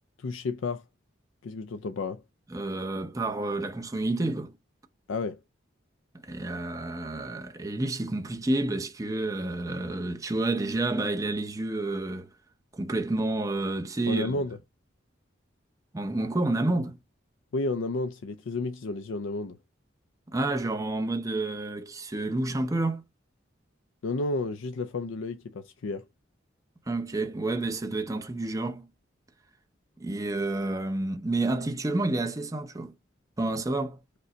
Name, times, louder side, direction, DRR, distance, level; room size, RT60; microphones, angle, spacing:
voice 1, 0.2-0.8 1.4-2.2 5.1-5.4 14.1-14.6 17.5-19.6 24.0-26.0, left 3 dB, 90° left, 0.5 m, -31 dB
voice 2, 2.5-4.5 6.2-12.3 12.7-14.3 15.9-17.0 20.3-23.0 26.9-28.9 30.0-32.9 33.4-34.0, right 2 dB, 15° right, 0.6 m, -29 dB
5.2 x 2.1 x 3.8 m
head